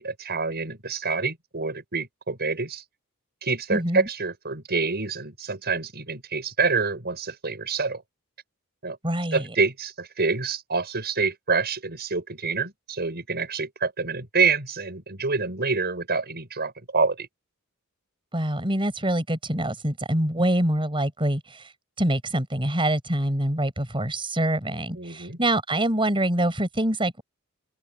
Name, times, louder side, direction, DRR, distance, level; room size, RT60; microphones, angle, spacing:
voice 1, 0.0-2.8 3.4-8.0 8.8-9.0 9.3-17.3 25.0-25.4, right 4 dB, 50° right, 6.7 m, -27 dB
voice 2, 3.7-4.1 9.0-9.5 18.3-21.7 22.0-27.2, right 1 dB, 25° right, 5.8 m, -25 dB
head